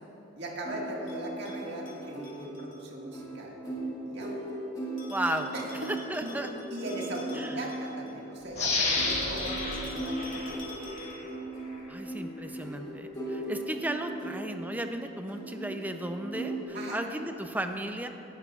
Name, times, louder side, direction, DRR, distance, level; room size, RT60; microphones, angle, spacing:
voice 1, 0.4-3.6 4.1-4.4 5.5-5.9 6.2-6.3 6.7-10.6 16.7-17.0, right 1 dB, 60° right, -2 dB, 1.8 m, -39 dB
sound 1, 0.6-16.6, right 1 dB, 20° left, 1.8 m, -38 dB
Bell, 1.1-2.8 5.0-8.2 9.0-11.4, left 4 dB, 70° left, 2.4 m, -49 dB
voice 2, 5.1-5.5 5.9-6.5 7.3-7.6 11.9-18.1, right 1 dB, 10° right, 6 dB, 0.5 m, -35 dB
sound 2, 8.5-11.2 11.7-11.8, left 3 dB, 35° left, 1.5 m, -31 dB
17.5 x 11.0 x 2.4 m, 2.9 s
head